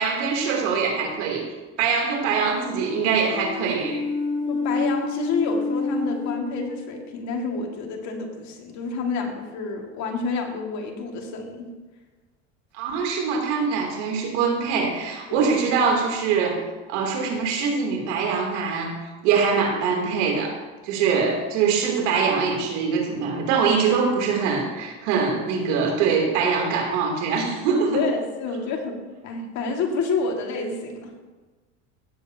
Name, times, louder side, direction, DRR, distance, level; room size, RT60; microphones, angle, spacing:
voice 1, 0.0-1.4 1.8-4.0 12.7-16.6 16.9-19.0 19.2-20.5 20.8-28.1, right 5 dB, 80° right, 0 dB, 3.2 m, -23 dB
sound 1, 2.8-7.1, left 3 dB, 25° left, 1.1 m, -28 dB
voice 2, 4.5-11.7 15.3-15.5 21.1-21.2 27.9-29.0 29.2-31.1, left 4 dB, 50° left, 2 dB, 2.2 m, -29 dB
16.5 x 7.9 x 2.9 m, 1.3 s
supercardioid pair, 120°, 35 cm